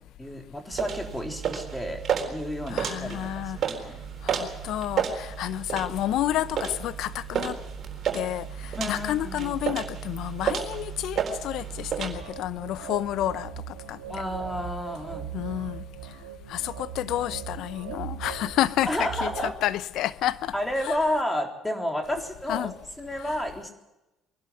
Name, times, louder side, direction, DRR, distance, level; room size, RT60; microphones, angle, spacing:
voice 1, 0.2-2.0 2.3-4.0 8.8-9.6 14.1-15.3 18.9-19.5 20.5-22.7 23.0-23.7, left 1 dB, 10° left, 3.7 m, -31 dB
sound 1, 0.7-12.1, right 8 dB, 50° right, 4.0 m, -32 dB
voice 2, 2.7-3.6 4.2-7.6 8.1-14.0 15.3-15.8 16.5-20.5 20.8-21.0 22.5-22.7 23.1-23.4, left 13 dB, 70° left, 0.7 m, -30 dB
sound 2, 12.1-19.5, right 10 dB, 90° right, 1.7 m, -39 dB
23.0 x 12.0 x 9.6 m
hypercardioid pair, 60°, 0 cm